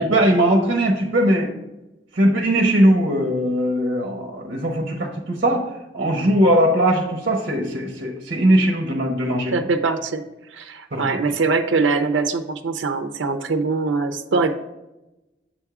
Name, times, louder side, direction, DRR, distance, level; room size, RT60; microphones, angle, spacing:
voice 1, 0.0-1.5 2.1-5.6 5.9-9.5 10.9-11.1, right 1 dB, 55° right, 1 dB, 1.0 m, -19 dB
voice 2, 9.5-10.2 10.5-14.5, right 4 dB, 85° right, 7 dB, 0.6 m, -22 dB
7.5 x 3.6 x 4.8 m, 0.96 s
head